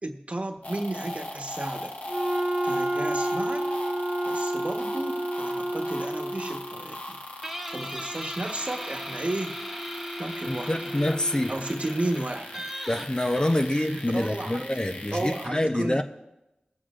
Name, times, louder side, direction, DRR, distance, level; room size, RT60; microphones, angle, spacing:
voice 1, 0.0-1.9 2.6-3.7 4.2-7.3 7.7-9.6 10.2-10.7 11.5-12.6 13.7-14.6 15.1-16.0, right 1 dB, 45° right, 1.2 m, -33 dB
sound 1, 0.6-15.5, left 1 dB, 55° left, 1.4 m, -38 dB
Wind instrument woodwind instrument, 2.1-6.8, right 1 dB, 25° right, 0.5 m, -29 dB
Guitar, 7.4-14.6, equal, 5° right, 1.3 m, -38 dB
voice 2, 10.5-11.6 12.9-16.0, left 1 dB, 25° left, 0.7 m, -26 dB
22.5 x 8.4 x 2.5 m
wide cardioid pair, 40°, 3 cm